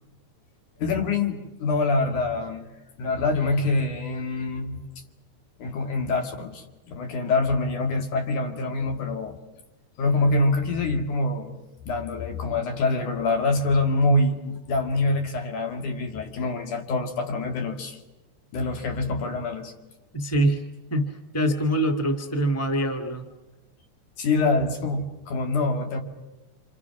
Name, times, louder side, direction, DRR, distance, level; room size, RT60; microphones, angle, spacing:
voice 1, 0.8-2.7 3.0-4.8 5.6-9.4 10.0-11.6 11.9-18.0 18.5-19.7 24.2-26.0, left 2 dB, 80° left, 3 dB, 4.1 m, -25 dB
voice 2, 20.1-20.6 20.9-23.3, right 1 dB, 5° left, 4 dB, 1.8 m, -24 dB
30.0 x 27.0 x 6.1 m, 1.1 s
omnidirectional pair, 3.5 m